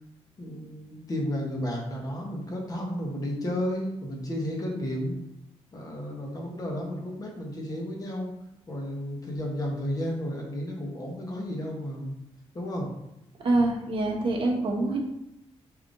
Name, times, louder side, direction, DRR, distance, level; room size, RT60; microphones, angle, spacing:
voice 1, 0.4-5.2 5.7-8.3 8.7-12.2 12.5-12.9, equal, 35° left, -1 dB, 1.0 m, -32 dB
voice 2, 13.4-15.0, right 2 dB, 55° right, -1 dB, 0.9 m, -25 dB
4.9 x 2.8 x 2.6 m, 0.86 s
cardioid pair, 105°, 11 cm